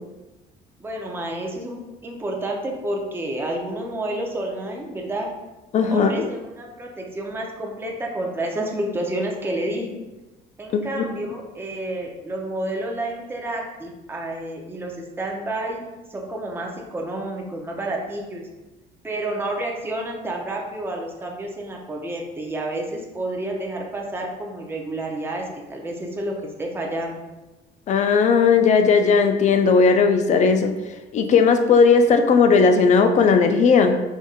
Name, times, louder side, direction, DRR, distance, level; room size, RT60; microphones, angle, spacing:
voice 1, 0.8-5.3 5.9-9.9 10.6-15.8 16.1-18.4 19.0-25.4 25.7-26.3 26.6-27.3, right 1 dB, 15° right, 0 dB, 0.6 m, -29 dB
voice 2, 5.7-6.3 10.9-11.0 27.9-30.7 31.1-34.0, left 5 dB, 45° left, 6 dB, 0.4 m, -16 dB
5.1 x 2.6 x 2.4 m, 1.1 s
cardioid pair, 110°, 17 cm